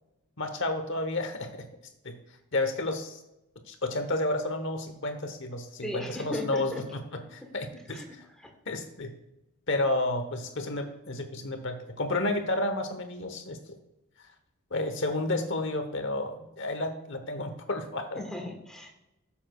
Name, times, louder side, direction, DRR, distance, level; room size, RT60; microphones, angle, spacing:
voice 1, 0.4-1.7 2.0-2.2 2.5-3.2 3.7-8.2 8.7-9.1 9.7-13.6 14.7-18.2, left 2 dB, 55° left, 7 dB, 1.1 m, -31 dB
voice 2, 5.8-6.8 7.9-8.5 18.2-19.0, left 1 dB, 5° left, 1 dB, 1.3 m, -37 dB
12.5 x 7.1 x 2.4 m, 0.91 s
head